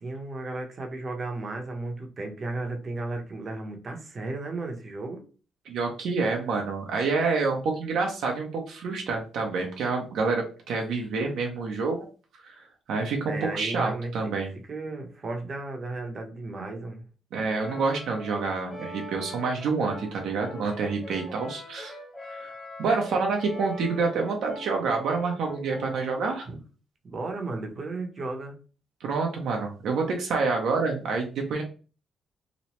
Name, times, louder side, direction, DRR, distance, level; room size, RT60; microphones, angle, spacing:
voice 1, 0.0-5.2 13.3-14.3 14.7-17.0 26.5-26.6 27.0-28.5, right 2 dB, 40° right, 3 dB, 0.7 m, -34 dB
voice 2, 5.7-12.1 12.3-14.5 17.3-22.0 22.3-22.5 22.8-26.5 29.0-31.6, right 4 dB, 75° right, 2 dB, 0.6 m, -28 dB
Brass instrument, 17.6-26.1, left 1 dB, 20° left, 1.2 m, -42 dB
2.9 x 2.0 x 2.9 m, 0.36 s
cardioid pair, 90°, 0 cm